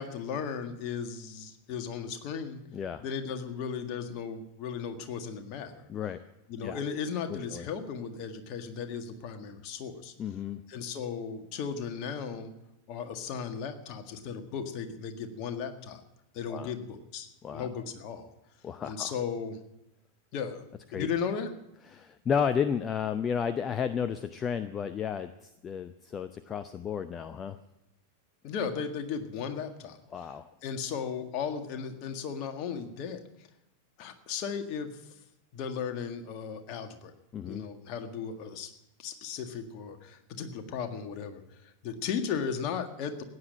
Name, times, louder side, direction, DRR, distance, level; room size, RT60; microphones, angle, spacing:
voice 1, 0.0-2.6 3.0-5.9 6.5-10.1 10.7-12.5 12.9-16.0 16.3-18.3 18.8-19.6 20.3-20.6 20.9-21.5 28.4-30.3 30.6-33.2 34.0-35.1 35.5-37.1 37.4-38.7 39.0-43.2, left 6 dB, 40° left, 6 dB, 1.8 m, -36 dB
voice 2, 2.7-3.0 5.9-6.2 6.6-6.8 7.3-7.7 10.2-10.6 16.5-16.7 17.4-17.7 18.6-19.1 20.9-21.1 21.9-27.6 30.1-30.5 37.3-37.6, left 7 dB, 25° left, 12 dB, 0.6 m, -32 dB
15.5 x 9.5 x 8.8 m, 0.90 s
figure-of-eight pair, 90°, 0 cm